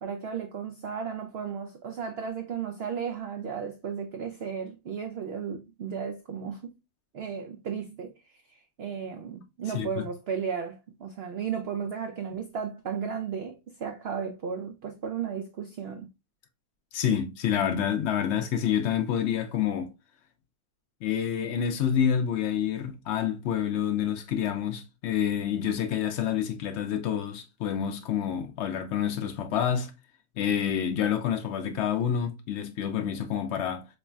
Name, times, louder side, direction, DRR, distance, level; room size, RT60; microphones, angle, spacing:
voice 1, 0.0-6.8 7.1-16.1, right 7 dB, 80° right, 0.5 m, -34 dB
voice 2, 9.7-10.1 16.9-19.9 21.0-29.9 30.4-33.9, left 9 dB, 65° left, 0.7 m, -28 dB
4.1 x 3.2 x 2.2 m
omnidirectional pair, 1.6 m